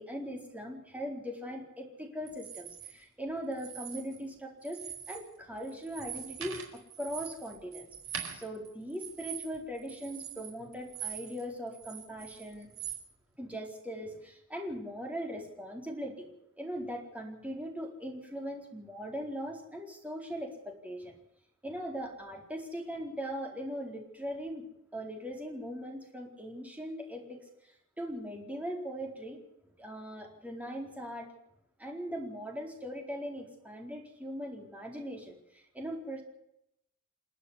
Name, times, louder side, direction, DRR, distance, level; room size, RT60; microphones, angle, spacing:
voice 1, 0.0-4.8 5.1-7.9 8.3-12.7 13.4-16.3 16.6-21.1 21.6-24.7 24.9-29.4 29.8-31.3 31.8-36.2, equal, 5° right, 1 dB, 4.3 m, -40 dB
sound 1, 2.3-2.9 3.5-4.3 4.6-5.3 5.6-11.4 11.7-13.0, right 8 dB, 65° right, 4.5 m, -43 dB
28.5 x 9.5 x 9.9 m, 0.81 s
head